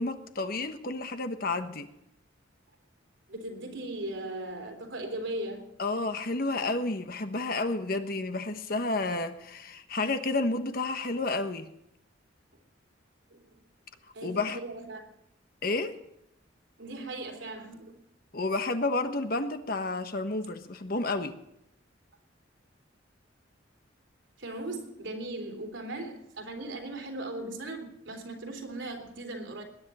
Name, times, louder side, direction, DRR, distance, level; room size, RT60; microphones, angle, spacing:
voice 1, 0.0-1.9 5.8-11.7 14.2-14.6 15.6-15.9 18.3-21.3, left 2 dB, 50° left, 1.2 m, -30 dB
voice 2, 3.3-5.7 13.3-13.6 14.1-15.1 16.8-18.0 24.4-29.6, right 2 dB, 80° right, 3.4 m, -38 dB
20.5 x 10.5 x 4.3 m
head